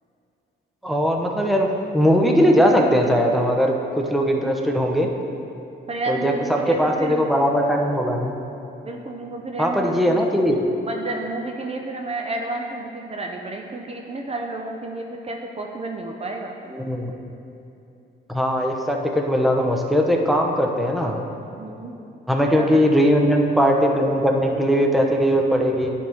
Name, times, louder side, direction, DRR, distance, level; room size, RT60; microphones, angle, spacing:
voice 1, 0.8-5.1 6.1-6.3 6.7-8.3 9.6-10.6 16.7-17.1 18.3-21.2 22.3-25.9, equal, ahead, 1 dB, 0.8 m, -20 dB
voice 2, 5.9-7.3 8.8-10.3 10.8-16.5 21.5-21.9 22.5-22.8, right 2 dB, 30° right, 2 dB, 0.6 m, -31 dB
10.5 x 3.6 x 5.6 m, 2.8 s
cardioid pair, 90°, 20 cm